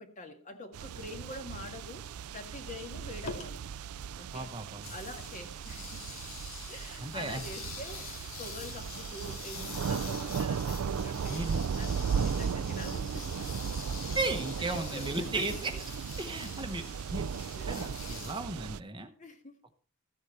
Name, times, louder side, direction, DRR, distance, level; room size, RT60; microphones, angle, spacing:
voice 1, 0.0-2.1 2.3-3.6 4.2-4.5 4.9-6.1 6.7-8.1 8.4-13.5 14.6-15.8 17.5-17.8 19.2-19.6, left 1 dB, 35° left, 5 dB, 1.8 m, -45 dB
sound 1, 0.7-18.8, right 6 dB, 85° right, 0.4 m, -36 dB
sound 2, 3.2-3.5 4.8-18.4, left 5 dB, 70° left, 2.5 m, -45 dB
voice 2, 4.3-4.9 7.0-7.4 11.3-11.6 14.1-15.7 16.2-16.8 17.1-17.3 17.7-19.1, right 2 dB, 20° right, 7 dB, 0.9 m, -35 dB
14.0 x 8.1 x 4.3 m, 0.42 s
head